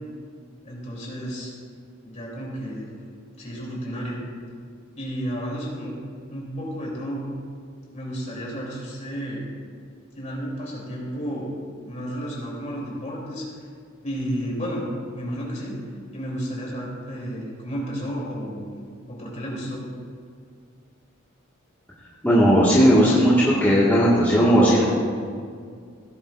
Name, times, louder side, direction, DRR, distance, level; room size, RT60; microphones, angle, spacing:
voice 1, 0.6-1.5 2.0-2.9 3.4-4.2 4.9-5.9 6.3-7.3 7.9-9.4 10.2-11.5 11.8-13.6 14.0-14.8 15.1-15.8 16.1-18.7 19.1-19.9, equal, 35° left, -4 dB, 3.2 m, -32 dB
voice 2, 22.2-25.0, equal, 10° left, -9 dB, 1.8 m, -17 dB
17.0 x 10.5 x 2.6 m, 2.1 s
head